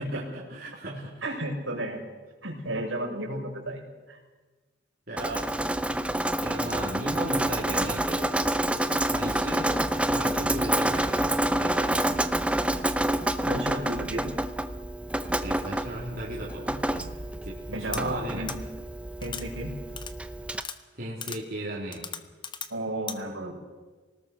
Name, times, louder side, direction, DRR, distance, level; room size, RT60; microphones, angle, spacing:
voice 1, 0.0-1.4 5.1-5.5 6.4-8.5 9.1-9.7 10.1-12.3 15.4-17.1 17.4-18.5 20.9-22.1, right 1 dB, 50° right, -5 dB, 3.4 m, -37 dB
voice 2, 1.2-2.0 2.4-3.8 4.1-4.2 13.5-14.2 17.7-18.5 19.2-19.7 22.7-23.6, right 1 dB, 80° right, 0 dB, 6.2 m, -32 dB
Drip, 5.2-20.6, right 1 dB, 5° right, 0.7 m, -28 dB
sound 1, 17.9-18.0 18.5-18.6 19.2-19.4 20.0-20.1 20.6-20.8 21.2-21.4 21.9-22.7 23.1-23.2, left 7 dB, 25° left, 1.0 m, -36 dB
25.0 x 19.0 x 6.5 m, 1.3 s
head